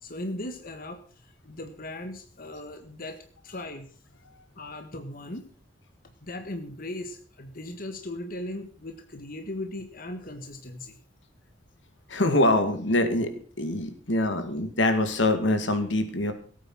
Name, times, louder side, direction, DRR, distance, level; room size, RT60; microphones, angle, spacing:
voice 1, 0.0-1.0 1.4-3.2 3.4-3.9 4.5-5.4 6.2-11.0, left 1 dB, 50° left, 6 dB, 1.7 m, -38 dB
voice 2, 12.1-13.3 13.6-16.3, left 1 dB, 80° left, 9 dB, 2.3 m, -24 dB
17.0 x 9.2 x 6.2 m, 0.43 s
head